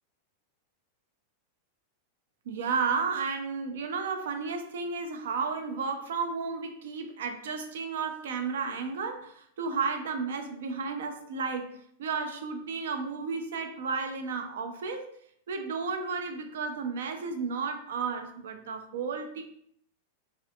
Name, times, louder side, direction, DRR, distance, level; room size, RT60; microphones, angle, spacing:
voice 1, 2.5-15.1 15.5-19.4, right 5 dB, 80° right, 6 dB, 0.5 m, -33 dB
3.5 x 3.3 x 2.8 m, 0.67 s
supercardioid pair, 175°, 0 cm